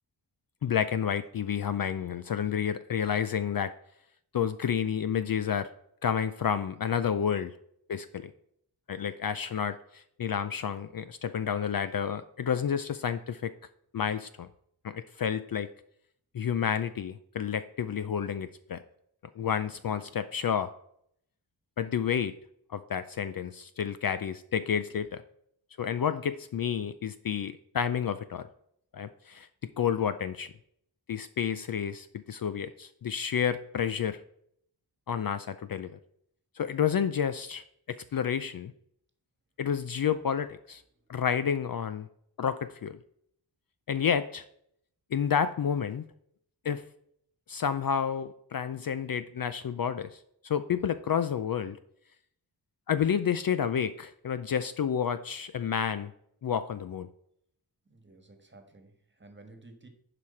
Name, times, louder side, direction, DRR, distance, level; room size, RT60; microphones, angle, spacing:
voice 1, 0.6-3.7 4.3-5.7 6.0-7.6 7.9-8.3 8.9-13.5 13.9-14.5 14.8-15.7 16.3-18.8 19.4-20.7 21.8-22.3 22.7-25.2 25.8-28.5 28.9-29.5 29.8-30.5 31.1-34.2 35.1-36.0 36.6-38.7 39.6-40.8 41.1-42.1 42.4-43.0 43.9-44.4 45.1-46.0 46.6-46.8 47.5-51.8 52.9-56.1 56.4-57.1, left 8 dB, 50° left, 12 dB, 0.5 m, -30 dB
voice 2, 57.8-59.9, right 2 dB, 25° right, 5 dB, 1.5 m, -53 dB
11.0 x 4.9 x 4.3 m, 0.69 s
wide cardioid pair, 85°, 45 cm